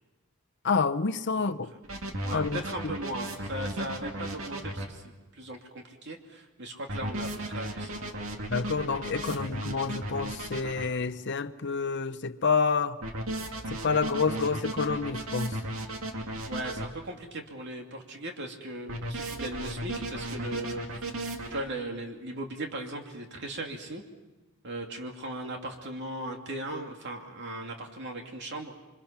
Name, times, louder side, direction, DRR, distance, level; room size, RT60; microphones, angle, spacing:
voice 1, 0.6-1.7 2.3-2.6 8.5-13.0 13.7-15.6, left 5 dB, 55° left, 0.8 m, -28 dB
sound 1, 1.8-4.9 6.9-10.9 13.0-16.9 18.9-21.6, right 1 dB, 70° right, 2.5 m, -35 dB
voice 2, 2.2-8.4 9.3-9.4 16.5-21.2 21.5-24.0 24.6-28.7, right 1 dB, 55° right, 2.7 m, -38 dB
27.5 x 25.0 x 5.9 m
head